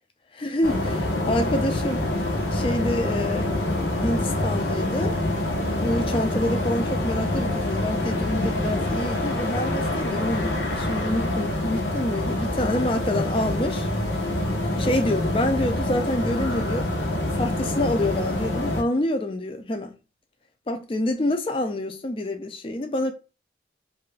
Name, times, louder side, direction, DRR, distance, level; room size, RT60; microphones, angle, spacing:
voice 1, 0.3-2.1 2.5-3.5 3.8-5.2 5.8-13.9 14.7-16.9 17.4-19.9 20.7-23.1, left 1 dB, 30° left, 0.4 m, -27 dB
sound 1, 0.6-18.8, left 1 dB, 85° left, 0.8 m, -26 dB
2.7 x 2.4 x 3.2 m
head